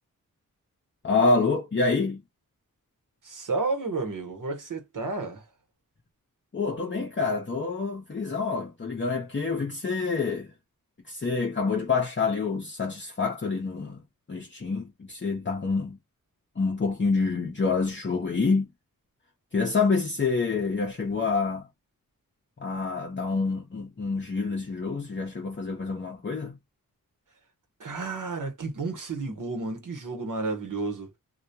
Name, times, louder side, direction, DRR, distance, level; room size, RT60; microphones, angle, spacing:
voice 1, 1.0-2.2 6.5-10.5 11.1-14.0 14.3-16.0 16.6-18.7 19.5-21.7 22.6-26.6, left 4 dB, 35° left, 0.7 m, -27 dB
voice 2, 3.2-5.4 27.8-31.1, right 3 dB, 65° right, 1.0 m, -31 dB
2.3 x 2.1 x 2.6 m
wide cardioid pair, 60°, 34 cm